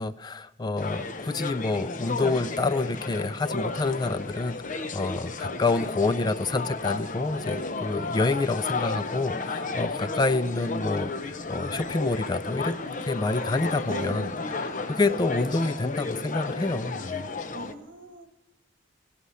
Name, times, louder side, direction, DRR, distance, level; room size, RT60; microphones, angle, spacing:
voice 1, 0.0-12.8 13.0-17.3, left 3 dB, 20° left, 12 dB, 0.4 m, -28 dB
sound 1, 0.8-17.7, left 3 dB, 45° left, 0.8 m, -33 dB
voice 2, 13.9-14.4 17.5-18.3, right 2 dB, 75° right, 8 dB, 1.3 m, -38 dB
17.0 x 11.5 x 5.6 m, 1.0 s
head